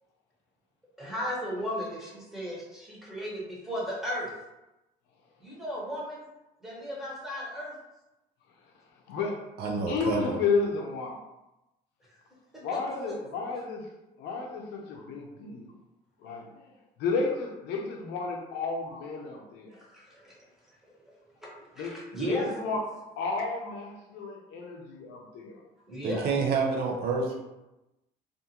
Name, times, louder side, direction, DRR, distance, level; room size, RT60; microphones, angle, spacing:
voice 1, 1.0-4.3 5.4-6.2 6.6-7.7 19.7-20.4 21.8-22.5 25.9-26.3 27.3-27.4, equal, ahead, -6 dB, 1.1 m, -35 dB
voice 2, 9.1-9.4 9.9-11.2 12.6-13.9 14.2-15.7 16.2-16.7 17.0-19.8 21.8-22.8 23.2-25.6, left 4 dB, 85° left, 1 dB, 0.5 m, -32 dB
voice 3, 9.6-10.2 26.0-27.3, right 4 dB, 70° right, 1 dB, 0.6 m, -28 dB
2.5 x 2.3 x 2.8 m, 0.98 s
cardioid pair, 110°, 17 cm